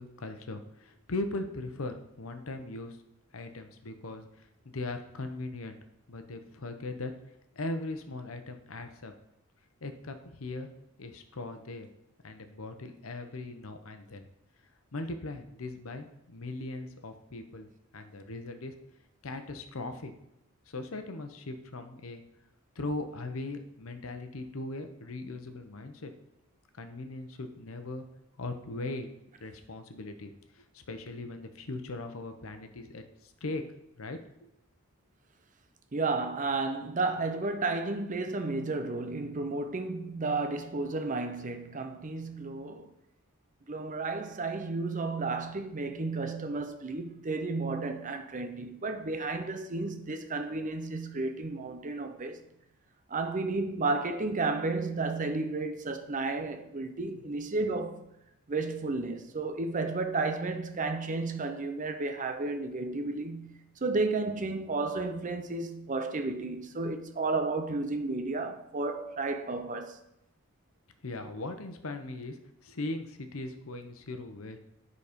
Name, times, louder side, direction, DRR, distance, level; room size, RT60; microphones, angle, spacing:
voice 1, 0.0-3.0 3.3-5.8 6.1-7.1 7.6-9.1 9.8-10.7 11.0-11.9 12.2-14.3 14.9-17.7 17.9-18.7 19.2-20.1 20.7-22.2 22.8-26.1 26.8-28.0 28.4-29.1 29.4-33.6 34.0-34.2 71.0-72.4 72.6-74.6, left 2 dB, 75° left, 0.9 m, -39 dB
voice 2, 35.9-42.9 43.7-52.4 53.1-58.1 58.5-70.0, right 3 dB, 35° right, 0.6 m, -32 dB
9.5 x 4.1 x 5.1 m
head